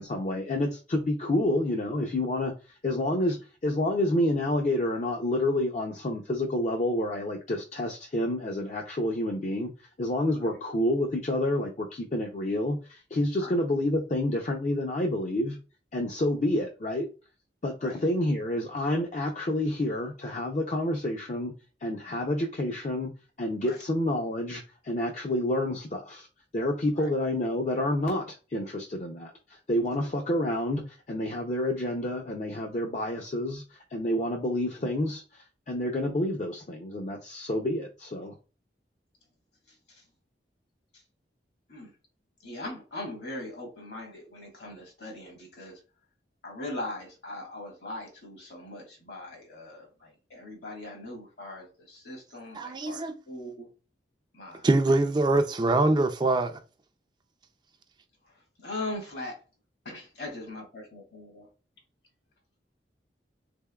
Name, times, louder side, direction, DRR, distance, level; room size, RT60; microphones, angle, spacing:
voice 1, 0.0-2.5 2.8-3.4 3.6-9.7 10.0-15.6 15.9-17.1 17.6-21.5 21.8-23.1 23.4-26.3 26.5-38.3, left 1 dB, 40° left, 0.5 m, -29 dB
voice 2, 42.4-45.8 46.4-53.7 54.3-54.7 58.6-59.4 59.8-61.5, left 2 dB, 65° left, 1.5 m, -40 dB
voice 3, 52.5-53.2 54.6-56.5, right 2 dB, 25° right, 0.4 m, -23 dB
3.6 x 3.4 x 2.2 m
head